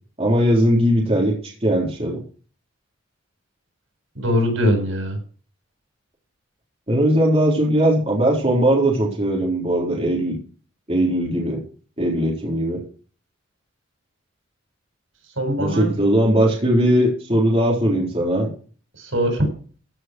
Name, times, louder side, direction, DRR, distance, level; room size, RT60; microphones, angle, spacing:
voice 1, 0.2-2.2 6.9-10.3 10.9-11.6 12.0-12.8 15.6-18.5, right 1 dB, 30° right, -2 dB, 4.0 m, -19 dB
voice 2, 4.2-5.2 15.4-15.9 19.0-19.5, equal, 85° right, 3 dB, 7.0 m, -21 dB
15.5 x 6.4 x 6.2 m, 0.40 s
head